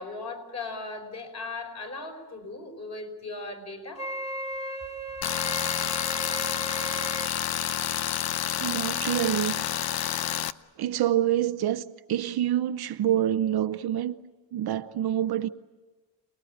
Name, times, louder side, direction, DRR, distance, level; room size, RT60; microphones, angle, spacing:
voice 1, 0.0-4.0, left 3 dB, 35° left, 5.2 m, -38 dB
Wind instrument woodwind instrument, 3.9-7.3, right 1 dB, 15° left, 2.4 m, -36 dB
Tools, 5.2-10.5, left 10 dB, 55° left, 0.8 m, -29 dB
voice 2, 8.6-9.7 10.8-14.2 14.5-15.5, right 11 dB, 60° right, 0.8 m, -26 dB
28.5 x 20.0 x 9.4 m
cardioid pair, 140°, 44 cm